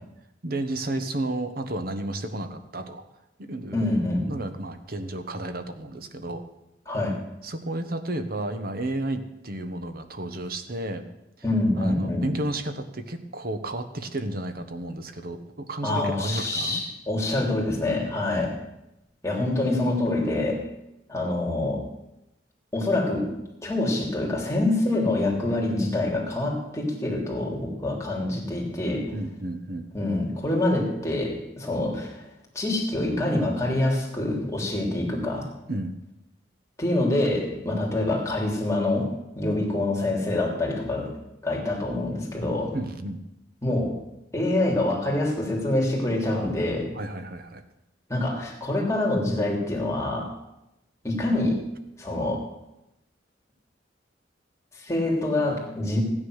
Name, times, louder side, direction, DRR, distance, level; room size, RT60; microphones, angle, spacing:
voice 1, 0.4-3.0 3.4-3.9 4.3-6.4 7.4-11.1 11.8-16.8 29.1-29.9 35.7-36.0 42.7-43.2 46.9-47.6, right 1 dB, 55° right, 8 dB, 1.2 m, -32 dB
voice 2, 3.7-4.3 6.9-7.2 11.4-12.3 15.8-18.5 19.2-20.6 21.1-21.8 22.7-23.3 23.6-29.1 29.9-32.3 32.5-35.5 36.8-41.1 41.4-42.7 43.6-43.9 44.3-46.9 48.1-50.3 51.0-51.6 52.0-52.4 54.7-56.0, left 2 dB, 15° left, -2 dB, 3.4 m, -26 dB
15.0 x 9.9 x 6.5 m, 0.88 s
head